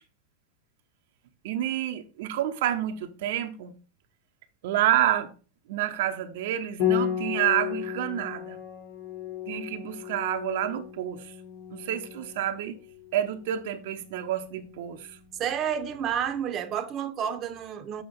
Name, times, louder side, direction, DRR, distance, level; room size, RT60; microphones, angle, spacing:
voice 1, 1.4-3.7 4.6-5.3 5.7-8.6 9.5-11.3 11.7-12.7 13.1-15.1, right 11 dB, 65° right, 0.8 m, -28 dB
Piano, 6.8-16.1, left 10 dB, 65° left, 3.9 m, -34 dB
voice 2, 15.4-18.0, right 8 dB, 35° right, 0.9 m, -30 dB
7.1 x 5.1 x 5.1 m
hypercardioid pair, 100°, 0 cm